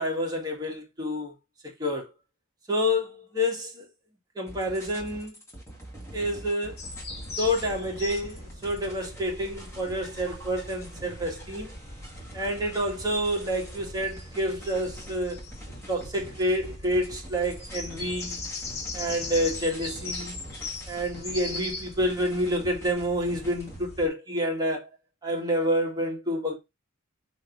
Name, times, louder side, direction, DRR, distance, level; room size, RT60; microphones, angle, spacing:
voice 1, 0.0-1.3 1.8-2.1 2.7-3.9 4.4-5.3 6.1-6.8 7.4-11.7 12.3-15.4 15.9-18.4 18.9-20.4 20.9-24.9 25.2-26.5, equal, 20° right, 2.0 m, -28 dB
sound 1, 4.5-23.8, right 1 dB, 15° left, 2.0 m, -45 dB
sound 2, 6.8-24.1, left 3 dB, 50° left, 2.2 m, -40 dB
5.8 x 4.1 x 4.0 m
head